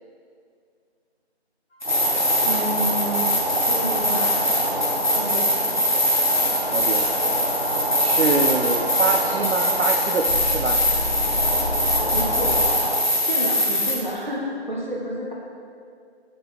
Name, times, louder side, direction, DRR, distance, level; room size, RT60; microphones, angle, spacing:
sound 1, 1.8-13.9, left 1 dB, 45° left, 1.1 m, -23 dB
sound 2, 1.8-13.0, equal, 65° right, 1.3 m, -28 dB
sound 3, 2.3-12.7, left 2 dB, 65° left, 0.8 m, -35 dB
voice 1, 2.4-3.3 3.7-4.4 5.1-5.6 12.1-12.6 13.3-15.3, right 1 dB, 45° right, -5 dB, 0.7 m, -29 dB
voice 2, 6.7-7.0 8.0-10.8, right 4 dB, 85° right, 3 dB, 0.5 m, -25 dB
7.6 x 4.0 x 3.4 m, 2.2 s
figure-of-eight pair, 175°, 33 cm